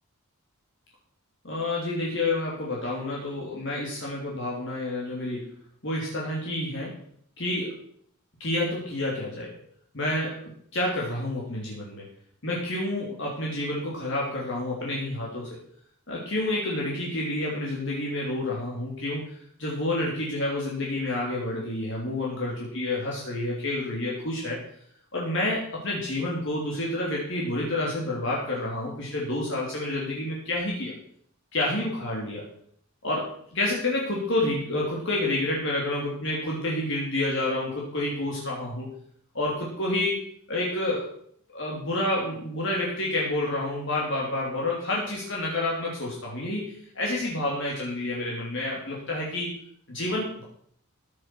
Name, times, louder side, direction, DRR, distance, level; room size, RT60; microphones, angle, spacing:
voice 1, 1.4-5.5 5.8-7.0 7.4-7.8 8.4-9.6 9.9-12.1 12.4-15.6 16.1-19.3 19.6-24.6 25.1-30.9 31.5-32.4 33.0-38.9 39.3-41.1 41.5-49.5 49.9-50.4, left 1 dB, 55° left, -4 dB, 3.1 m, -29 dB
15.0 x 7.2 x 6.2 m, 0.64 s
head